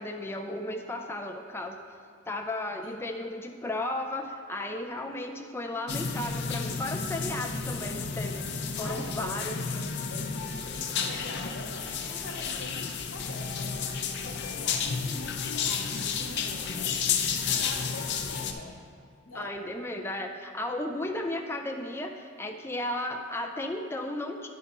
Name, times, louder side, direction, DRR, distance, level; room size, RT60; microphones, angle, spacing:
voice 1, 0.0-1.8 2.3-9.6 19.3-24.5, left 1 dB, 15° left, 3 dB, 0.3 m, -34 dB
sound 1, 5.9-18.5, left 6 dB, 65° left, 0.5 m, -32 dB
voice 2, 8.8-17.0 17.3-18.8 19.3-19.6, left 2 dB, 85° left, 1 dB, 1.0 m, -44 dB
9.7 x 4.1 x 5.2 m, 2.1 s
head